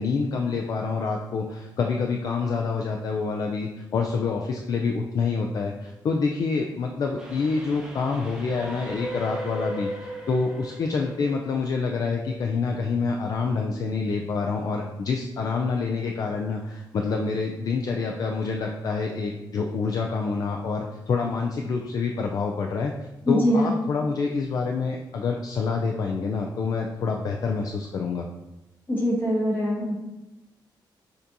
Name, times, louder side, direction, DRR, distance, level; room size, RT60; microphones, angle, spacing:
voice 1, 0.0-9.9 10.3-22.9 23.3-28.3, left 4 dB, 50° left, 2 dB, 0.3 m, -27 dB
Train, 7.2-12.5, equal, 10° right, 0.7 m, -37 dB
voice 2, 23.3-23.7 28.9-29.9, equal, 25° left, -4 dB, 1.2 m, -23 dB
6.5 x 2.6 x 2.8 m, 0.99 s
wide cardioid pair, 155°, 8 cm